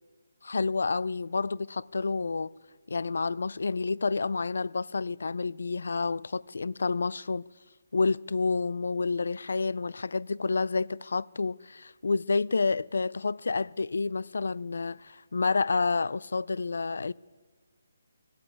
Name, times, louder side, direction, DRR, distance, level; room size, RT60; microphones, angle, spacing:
voice 1, 0.4-2.5 2.9-7.4 7.9-17.1, left 4 dB, 75° left, 0.4 m, -29 dB
15.0 x 8.8 x 8.3 m
hypercardioid pair, 160°, 0 cm